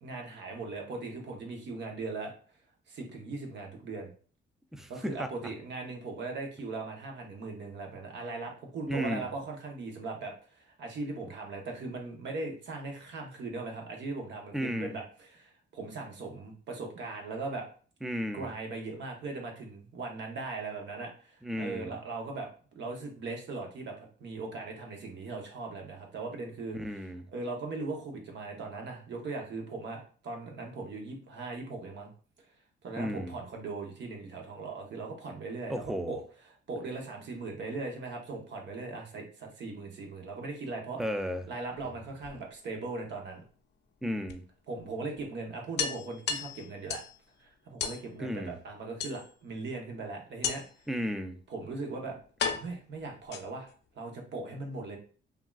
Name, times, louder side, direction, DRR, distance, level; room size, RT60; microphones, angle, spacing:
voice 1, 0.0-2.3 2.9-4.1 4.9-17.6 18.3-22.5 22.7-32.1 32.8-36.2 36.7-41.0 41.5-43.4 44.7-47.0 47.4-50.6 51.5-52.2 52.6-55.0, right 3 dB, 65° right, 2 dB, 0.8 m, -39 dB
voice 2, 4.7-5.3 8.9-9.3 14.5-15.0 18.0-18.5 21.4-21.9 26.7-27.3 33.0-33.4 35.7-36.2 41.0-41.4 44.0-44.4 48.2-48.6 50.9-51.4, equal, ahead, 7 dB, 0.3 m, -34 dB
sound 1, 41.8-42.8 44.3-44.4 44.8-44.9 45.2-45.3 45.8-47.2 47.8-48.0 49.0-49.6 50.4-50.9 51.7-51.8 52.4-53.8, left 6 dB, 60° left, 0.5 m, -35 dB
3.4 x 2.3 x 2.3 m, 0.41 s
cardioid pair, 90°, 20 cm